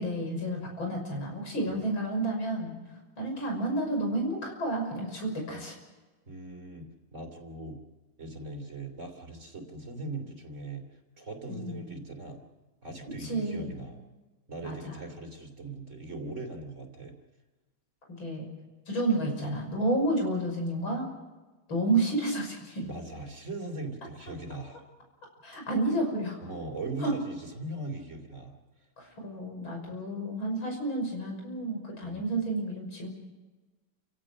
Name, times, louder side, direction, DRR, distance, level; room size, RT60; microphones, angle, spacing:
voice 1, 0.0-2.7 3.2-5.8 11.5-11.8 13.2-13.7 14.6-14.9 18.1-18.5 18.9-21.1 21.7-22.8 25.4-26.4 27.0-27.2 29.0-33.1, right 2 dB, 85° left, 1 dB, 6.8 m, -30 dB
voice 2, 6.3-6.8 7.1-7.8 8.2-10.8 11.2-12.4 12.8-14.0 14.5-17.1 22.8-24.8 26.4-28.5 32.0-32.2, right 2 dB, 35° right, 4 dB, 3.2 m, -40 dB
29.5 x 17.0 x 6.4 m, 1.2 s
omnidirectional pair, 2.1 m